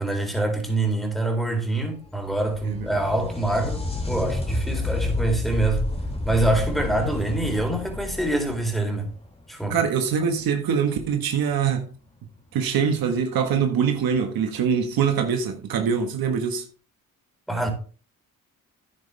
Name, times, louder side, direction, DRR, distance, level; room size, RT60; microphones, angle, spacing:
voice 1, 0.0-5.8 6.3-9.1 9.5-9.8 17.5-17.7, right 2 dB, ahead, 4.0 m, -25 dB
sound 1, 2.0-9.6 13.0-13.1 14.2-14.3, left 1 dB, 15° left, 2.4 m, -30 dB
voice 2, 9.7-11.9 12.5-16.6, right 7 dB, 80° right, 1.7 m, -23 dB
9.7 x 9.5 x 3.5 m
cardioid pair, 65°, 35 cm